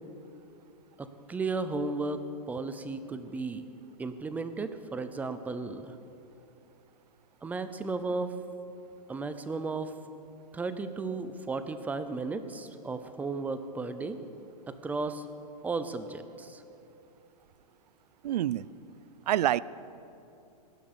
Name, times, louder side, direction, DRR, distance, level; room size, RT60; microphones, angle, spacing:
voice 1, 1.0-3.7 4.0-6.0 7.4-8.3 9.1-9.9 10.5-14.2 14.7-15.2 15.6-16.6, right 3 dB, 10° right, 11 dB, 0.6 m, -34 dB
voice 2, 18.2-18.7 19.3-19.6, right 12 dB, 75° right, 20 dB, 0.5 m, -26 dB
16.5 x 10.5 x 6.9 m, 2.8 s
hypercardioid pair, 145°, 21 cm